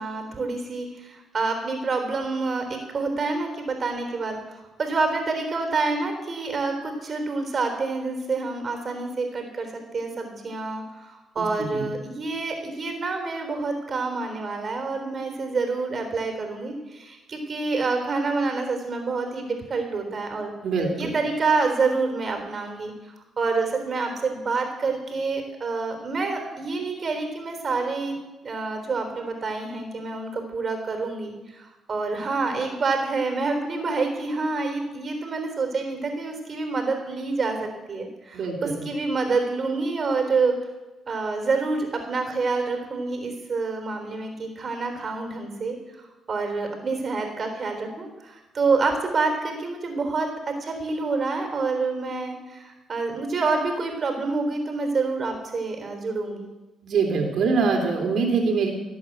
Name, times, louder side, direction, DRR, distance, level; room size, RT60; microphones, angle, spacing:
voice 1, 0.0-20.5 21.0-28.1 28.4-40.6 41.1-56.5, right 3 dB, 45° right, 5 dB, 3.8 m, -27 dB
voice 2, 11.4-11.9 20.6-21.1 38.3-38.5 56.8-58.7, right 4 dB, 65° right, 2 dB, 3.5 m, -24 dB
17.5 x 8.5 x 8.1 m, 1.1 s
cardioid pair, 90°, 0 cm